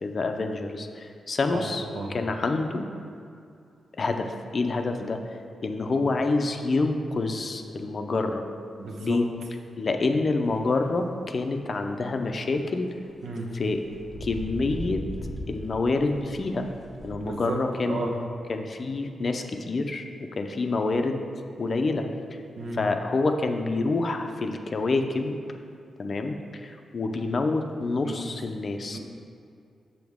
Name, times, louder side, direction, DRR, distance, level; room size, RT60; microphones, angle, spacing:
voice 1, 0.0-2.9 4.0-5.4 5.6-8.4 9.0-9.3 9.8-12.9 13.5-13.8 14.2-15.0 15.5-16.7 17.0-18.0 18.5-21.2 21.6-22.1 22.7-25.4 26.0-29.0, left 3 dB, 35° left, 5 dB, 0.5 m, -27 dB
voice 2, 8.8-9.2 13.2-13.5 17.1-17.6 17.8-18.1 22.6-22.8 28.0-28.1 28.9-29.0, right 3 dB, 90° right, 0 dB, 1.1 m, -33 dB
sound 1, 10.4-10.7 11.1-11.2 11.7-12.1 12.9-17.2, left 1 dB, 10° right, 0.9 m, -38 dB
8.0 x 7.0 x 3.6 m, 2.5 s
wide cardioid pair, 165°, 0 cm